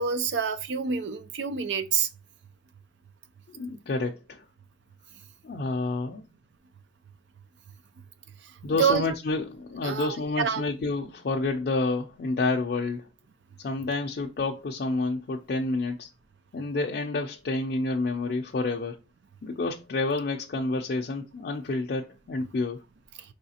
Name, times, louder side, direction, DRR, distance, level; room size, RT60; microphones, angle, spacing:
voice 1, 0.0-2.1 8.8-9.0 9.8-10.6, right 6 dB, 85° right, 0.5 m, -27 dB
voice 2, 3.5-4.4 5.4-6.2 8.6-13.1 13.6-16.1 16.5-19.0 19.4-22.8, left 3 dB, 60° left, 0.4 m, -29 dB
4.8 x 3.2 x 2.8 m
head